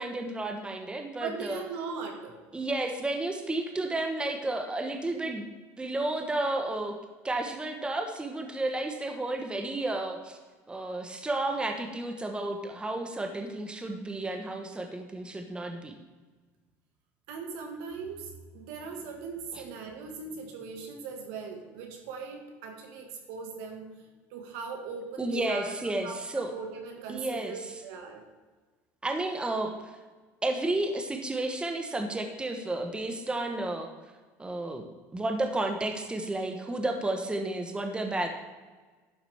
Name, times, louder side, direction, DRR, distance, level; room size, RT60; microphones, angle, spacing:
voice 1, 0.0-1.6 2.5-5.5 5.8-7.0 7.2-10.4 10.7-15.9 19.5-19.6 25.2-26.5 27.1-27.6 29.0-29.8 30.4-33.9 34.4-38.3, right 2 dB, 15° right, 4 dB, 1.0 m, -32 dB
voice 2, 1.2-2.4 17.3-23.9 24.3-25.7 26.0-28.2, right 5 dB, 80° right, 2 dB, 1.6 m, -39 dB
11.5 x 5.9 x 3.4 m, 1.3 s
supercardioid pair, 100°, 7 cm